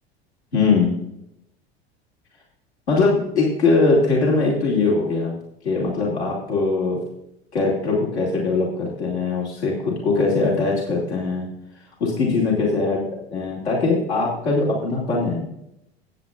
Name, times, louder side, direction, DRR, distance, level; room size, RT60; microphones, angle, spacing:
voice 1, 0.5-0.9 2.9-5.3 5.6-7.0 7.5-11.5 12.0-13.0 13.3-15.5, left 3 dB, 80° left, -4 dB, 2.7 m, -21 dB
15.0 x 9.1 x 2.5 m, 0.82 s
figure-of-eight pair, 75°, 33 cm